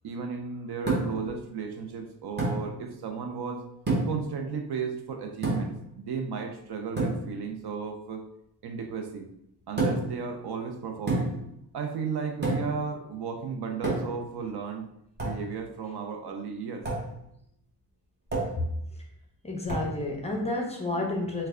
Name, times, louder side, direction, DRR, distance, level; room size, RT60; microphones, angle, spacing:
voice 1, 0.0-3.6 4.1-8.2 8.6-9.3 9.7-11.3 11.7-14.9 15.2-16.8, right 5 dB, 65° right, 5 dB, 0.5 m, -34 dB
sound 1, 0.9-1.3 2.4-2.6 3.9-4.3 5.4-5.8 7.0-7.3 9.8-10.2 11.1-11.5 12.4-12.8 13.8-14.3 15.2-15.4 16.9-17.1 18.3-18.6 19.7-20.0, right 2 dB, 25° right, 1.0 m, -28 dB
voice 2, 19.4-21.5, left 2 dB, 15° left, 0 dB, 0.5 m, -30 dB
3.2 x 2.2 x 3.5 m, 0.77 s
cardioid pair, 115°, 42 cm